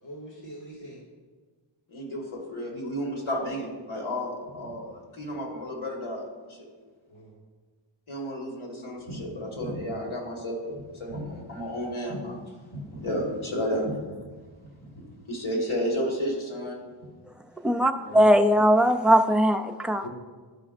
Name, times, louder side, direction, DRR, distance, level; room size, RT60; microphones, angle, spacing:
voice 1, 0.0-1.0 7.1-7.3 18.1-18.3 20.0-20.1, equal, 65° left, -7 dB, 1.9 m, -42 dB
voice 2, 1.9-6.2 6.5-6.7 8.1-12.4 12.7-14.0 14.8-16.8 18.0-18.2, equal, 85° left, -2 dB, 1.9 m, -32 dB
voice 3, 17.6-20.0, equal, ahead, 6 dB, 0.3 m, -20 dB
12.0 x 5.1 x 2.5 m, 1.4 s
wide cardioid pair, 70°, 47 cm